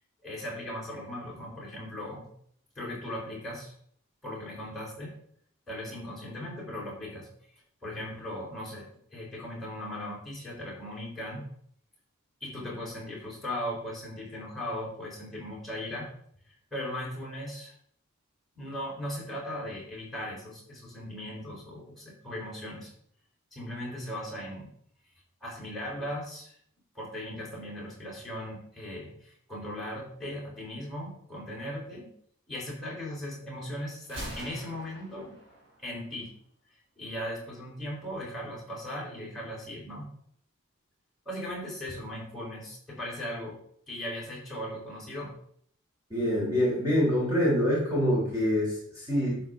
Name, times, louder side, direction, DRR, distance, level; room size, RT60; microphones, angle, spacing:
voice 1, 0.2-2.3 2.8-3.7 4.2-5.1 5.7-7.3 7.8-8.9 9.1-11.5 12.4-16.1 16.5-17.7 18.6-22.9 23.5-24.7 25.4-26.6 26.9-32.1 32.5-35.4 35.8-36.3 37.0-40.1 41.3-43.6 43.9-45.3, left 1 dB, ahead, -6 dB, 4.1 m, -38 dB
Gunshot gunfire, 34.0-36.0, equal, 55° right, 4.5 m, -43 dB
voice 2, 46.1-49.4, equal, 15° right, -6 dB, 3.5 m, -25 dB
11.5 x 7.6 x 3.8 m, 0.64 s
head